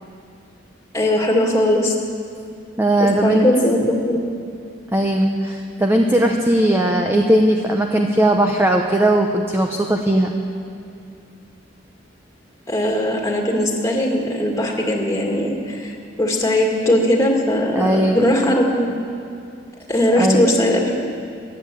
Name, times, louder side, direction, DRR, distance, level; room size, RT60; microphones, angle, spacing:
voice 1, 0.9-1.9 3.0-4.2 12.7-18.9 19.9-21.0, left 1 dB, 15° left, 0 dB, 2.0 m, -19 dB
voice 2, 2.8-3.5 4.9-10.3 17.7-18.3 20.2-20.6, right 1 dB, 10° right, 2 dB, 0.8 m, -18 dB
15.0 x 10.0 x 9.0 m, 2.5 s
head